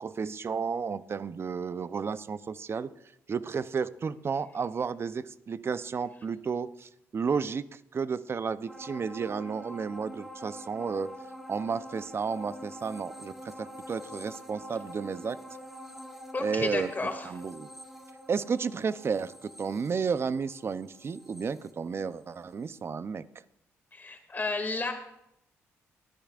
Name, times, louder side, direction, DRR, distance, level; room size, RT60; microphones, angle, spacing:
voice 1, 0.0-2.9 3.3-11.1 11.5-15.4 16.4-16.9 17.2-17.7 18.3-23.2, right 5 dB, 45° right, 15 dB, 0.6 m, -32 dB
sound 1, 8.7-22.4 22.8-22.9, equal, 5° right, 1.7 m, -46 dB
voice 2, 16.3-17.3 23.9-24.9, left 3 dB, 30° left, 4 dB, 2.3 m, -32 dB
22.5 x 10.5 x 2.5 m, 0.79 s
supercardioid pair, 60°, 6 cm